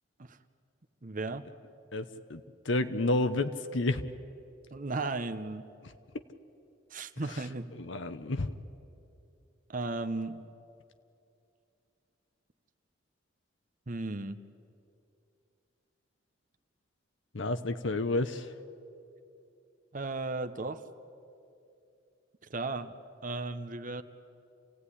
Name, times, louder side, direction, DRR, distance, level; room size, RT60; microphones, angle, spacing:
voice 1, 1.0-1.4 4.7-5.6 6.9-7.7 9.7-10.4 13.9-14.4 19.9-20.8 22.5-22.9 23.2-24.0, right 3 dB, 40° right, 9 dB, 0.9 m, -35 dB
voice 2, 1.9-4.0 7.8-8.5 17.3-18.5, left 2 dB, 65° left, 9 dB, 0.9 m, -30 dB
28.5 x 16.5 x 10.0 m, 2.6 s
head